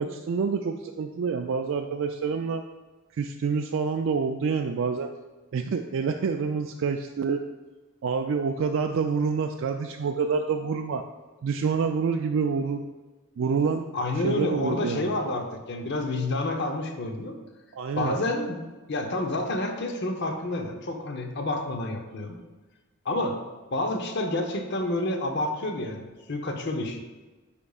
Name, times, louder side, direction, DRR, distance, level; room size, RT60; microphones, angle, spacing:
voice 1, 0.0-2.6 3.2-5.1 5.5-7.4 8.0-11.0 11.4-12.8 13.4-13.9 14.2-15.1 17.7-18.1, right 5 dB, 60° right, 4 dB, 0.3 m, -27 dB
voice 2, 13.9-17.3 18.0-18.6 18.9-22.4 23.0-23.4 23.7-27.0, left 2 dB, 55° left, 4 dB, 0.7 m, -29 dB
9.7 x 5.2 x 2.4 m, 1.2 s
head